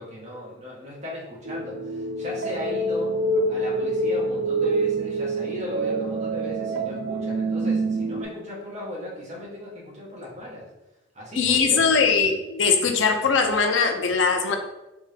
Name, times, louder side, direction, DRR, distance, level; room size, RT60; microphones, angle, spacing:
voice 1, 0.0-3.2 3.5-10.7 11.1-12.0, left 1 dB, 35° right, -4 dB, 1.2 m, -37 dB
sound 1, 1.4-8.2, right 2 dB, 60° right, 0.5 m, -26 dB
voice 2, 11.3-14.6, left 5 dB, 80° left, 4 dB, 0.6 m, -21 dB
3.5 x 3.4 x 3.4 m, 0.99 s
head